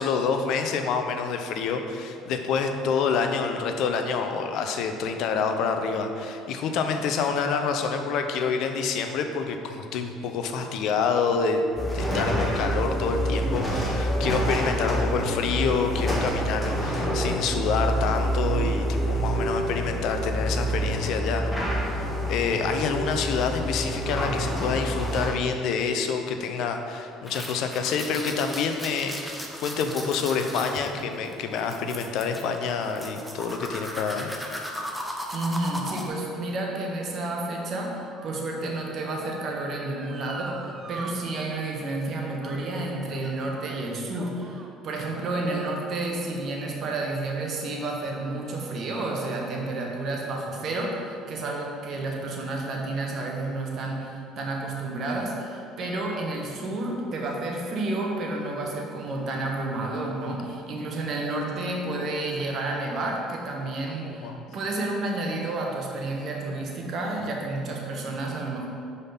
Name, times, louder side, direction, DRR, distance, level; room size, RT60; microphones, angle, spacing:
voice 1, 0.0-11.6 11.9-34.3 64.0-64.4, left 5 dB, 65° left, 6 dB, 0.6 m, -27 dB
sound 1, 11.8-25.3, equal, 15° left, 1.5 m, -27 dB
sound 2, 27.2-36.1, equal, ahead, 0.9 m, -37 dB
voice 2, 35.3-68.7, right 2 dB, 55° right, 0 dB, 1.2 m, -30 dB
Motor vehicle (road) / Siren, 36.4-41.1 41.5-41.6 42.4-42.8 43.1-44.8 45.5-45.6, right 4 dB, 35° right, 0.5 m, -45 dB
5.2 x 4.1 x 5.7 m, 2.5 s
hypercardioid pair, 65°, 0 cm